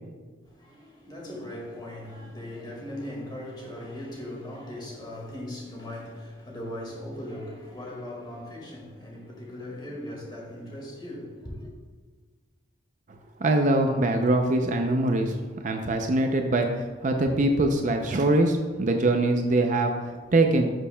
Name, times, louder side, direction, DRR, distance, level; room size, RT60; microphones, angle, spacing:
voice 1, 0.4-11.7, left 1 dB, 25° left, 1.8 m, -39 dB
voice 2, 13.4-15.4 15.6-20.7, right 2 dB, 40° right, 0.5 m, -23 dB
11.0 x 6.3 x 2.2 m
head